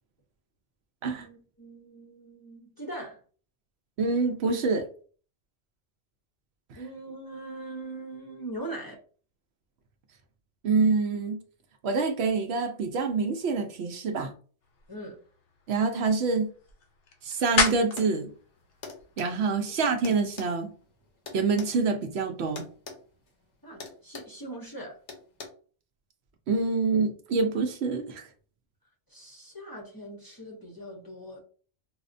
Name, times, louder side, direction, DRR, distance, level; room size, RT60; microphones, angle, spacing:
voice 1, 1.1-3.2 6.8-9.0 14.9-15.2 19.7-19.8 23.6-25.0 29.1-31.4, right 1 dB, 25° left, 0.6 m, -41 dB
voice 2, 4.0-4.9 10.6-11.4 11.8-14.3 15.7-16.5 17.2-18.3 19.2-20.7 21.3-22.7 26.5-28.3, right 4 dB, 70° right, 0.8 m, -26 dB
sound 1, 14.6-19.8, left 4 dB, 60° left, 0.8 m, -33 dB
sound 2, 17.7-18.1 18.8-19.3 20.0-21.7 22.6-23.0 23.3-23.5 23.8-24.4 25.1-25.5, left 4 dB, 80° left, 1.1 m, -41 dB
4.7 x 2.1 x 2.5 m
omnidirectional pair, 1.2 m